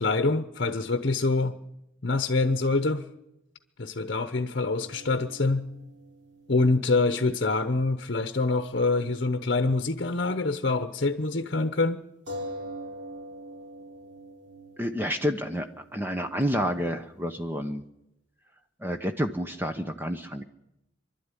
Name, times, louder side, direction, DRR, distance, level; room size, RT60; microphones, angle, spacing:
voice 1, 0.0-1.6 2.0-3.0 3.8-5.6 6.5-12.0, left 3 dB, 55° left, 9 dB, 0.9 m, -25 dB
sound 1, 4.8-8.7 8.9-9.0 12.3-17.5, equal, 70° right, 7.1 m, -44 dB
voice 2, 14.8-15.7 15.9-17.8 18.8-20.4, equal, 10° right, 7 dB, 0.8 m, -29 dB
24.5 x 12.0 x 9.8 m, 0.91 s
head